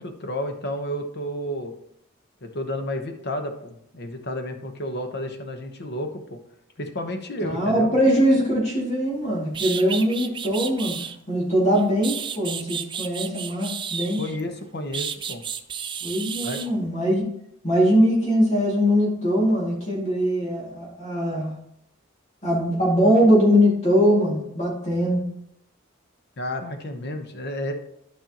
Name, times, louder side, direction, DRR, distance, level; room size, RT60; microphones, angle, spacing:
voice 1, 0.0-1.7 2.4-6.4 6.8-7.9 14.2-15.4 16.4-16.6 26.4-27.7, left 1 dB, 50° left, 5 dB, 1.0 m, -31 dB
voice 2, 7.4-11.0 11.3-14.2 16.0-17.2 17.6-21.5 22.4-25.3, equal, 30° left, -4 dB, 2.3 m, -21 dB
sound 1, 9.1-9.2 9.5-11.2 11.7-14.4 14.9-16.7, right 7 dB, 20° right, 0.4 m, -32 dB
12.0 x 5.4 x 3.0 m, 0.72 s
head